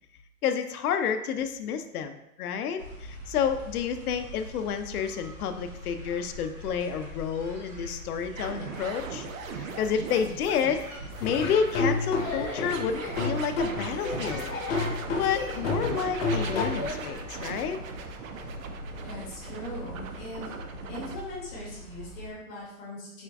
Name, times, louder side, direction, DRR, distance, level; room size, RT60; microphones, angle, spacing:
voice 1, 0.4-9.3 9.8-10.9 11.2-14.5 15.2-17.8, left 7 dB, 85° left, 7 dB, 0.6 m, -29 dB
sound 1, 2.8-22.3, left 1 dB, 30° right, 0.7 m, -43 dB
sound 2, 8.4-21.2, right 6 dB, 65° right, 0.5 m, -40 dB
Laughter / Drum, 11.2-17.1, left 3 dB, 40° left, 1.0 m, -30 dB
voice 2, 19.0-20.6 20.9-23.2, left 1 dB, 15° left, -9 dB, 0.7 m, -40 dB
4.3 x 2.3 x 3.4 m, 0.84 s
hypercardioid pair, 175°, 44 cm